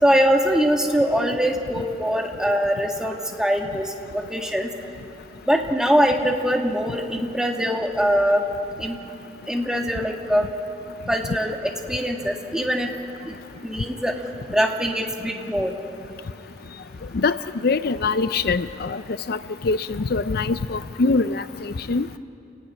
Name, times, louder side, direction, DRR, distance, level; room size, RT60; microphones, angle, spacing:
voice 1, 0.0-4.7 5.5-8.4 8.8-9.0 9.5-10.5 11.1-12.9 13.3-13.4 13.6-14.1 14.5-15.7, equal, 5° right, 1 dB, 2.1 m, -22 dB
voice 2, 17.6-19.0 19.3-22.1, left 3 dB, 60° left, 13 dB, 0.5 m, -23 dB
28.5 x 16.5 x 9.9 m, 2.6 s
head